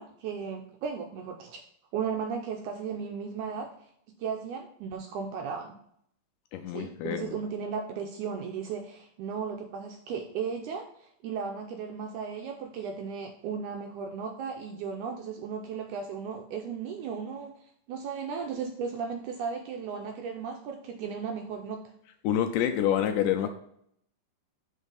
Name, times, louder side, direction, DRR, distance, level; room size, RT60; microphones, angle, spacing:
voice 1, 0.0-1.6 1.9-3.7 4.2-5.8 6.7-17.5 17.9-21.8, right 6 dB, 85° right, 3 dB, 1.8 m, -35 dB
voice 2, 6.5-7.4 22.2-23.5, left 10 dB, 80° left, 6 dB, 2.0 m, -27 dB
6.4 x 3.9 x 5.2 m, 0.70 s
omnidirectional pair, 4.1 m